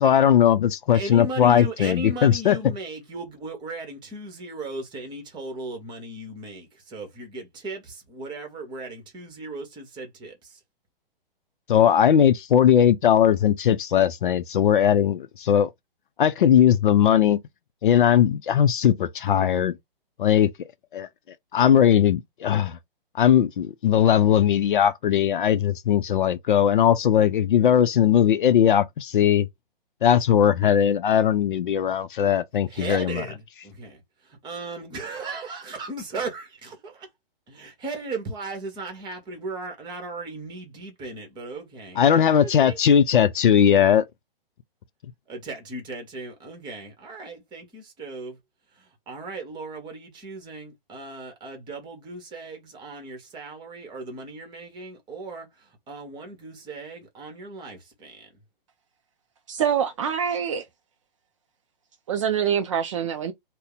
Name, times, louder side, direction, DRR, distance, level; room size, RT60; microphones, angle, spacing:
voice 1, 0.0-2.6 11.7-15.7 16.2-17.4 17.8-19.7 20.2-20.5 20.9-21.1 21.5-22.8 23.2-29.5 30.0-33.2 42.0-44.0, left 9 dB, 60° left, 0.5 m, -19 dB
voice 2, 0.9-10.6 32.7-37.1 37.5-42.0 42.4-43.0 45.3-48.4 48.7-58.3, right 2 dB, 15° right, 1.0 m, -37 dB
voice 3, 59.5-60.7 62.1-63.3, right 8 dB, 35° right, 0.4 m, -25 dB
2.7 x 2.1 x 4.0 m
figure-of-eight pair, 130°, 29 cm